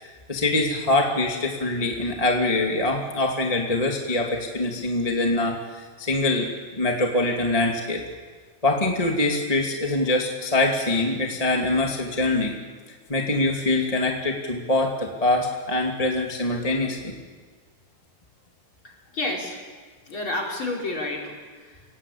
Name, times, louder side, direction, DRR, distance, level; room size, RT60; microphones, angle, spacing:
voice 1, 0.3-6.5 6.7-8.0 8.6-12.6 13.1-17.1, left 2 dB, 10° left, 0 dB, 2.1 m, -24 dB
voice 2, 18.8-19.6 20.1-21.8, left 2 dB, 35° left, -1 dB, 5.0 m, -30 dB
29.5 x 19.0 x 8.6 m, 1.5 s
omnidirectional pair, 3.9 m